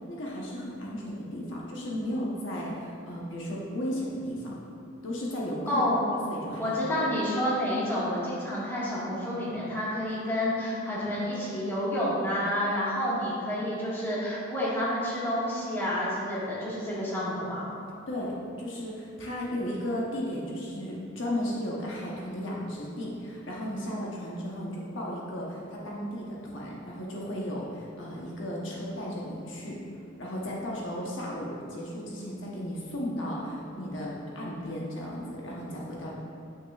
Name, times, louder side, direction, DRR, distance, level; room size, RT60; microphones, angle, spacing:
voice 1, 0.1-4.5 5.0-5.8 6.3-7.0 18.1-29.8 30.2-36.1, equal, 70° left, -4 dB, 1.1 m, -35 dB
voice 2, 5.7-6.1 6.6-17.7, left 1 dB, 10° left, -9 dB, 1.7 m, -29 dB
9.4 x 6.2 x 2.4 m, 2.5 s
head